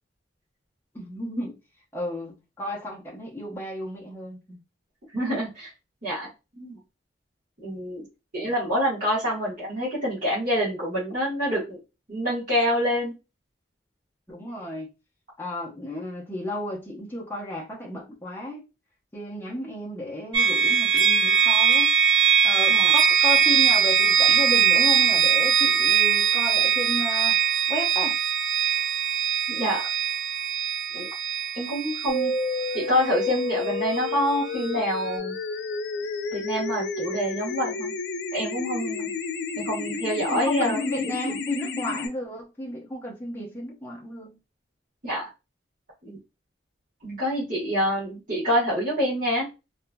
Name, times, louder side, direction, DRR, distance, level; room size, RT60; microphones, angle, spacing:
voice 1, 0.9-1.6 1.9-4.6 8.4-8.5 14.3-14.9 15.4-18.6 19.1-21.9 22.4-27.4 27.7-28.2 40.3-44.4, left 1 dB, 10° left, 0.7 m, -33 dB
voice 2, 5.1-5.7 6.0-6.3 6.6-6.8 7.6-8.0 8.3-11.8 12.1-13.1 22.7-22.9 29.5-29.8 30.9-31.1 31.5-32.3 32.7-35.3 36.3-37.9 38.3-39.1 39.6-41.1 45.0-45.2 46.0-46.2 47.0-49.5, equal, 45° right, 1.3 m, -26 dB
sound 1, 20.3-34.1, right 8 dB, 90° right, 0.9 m, -21 dB
sound 2, 32.1-42.1, left 3 dB, 60° left, 0.3 m, -31 dB
3.0 x 2.4 x 2.2 m
head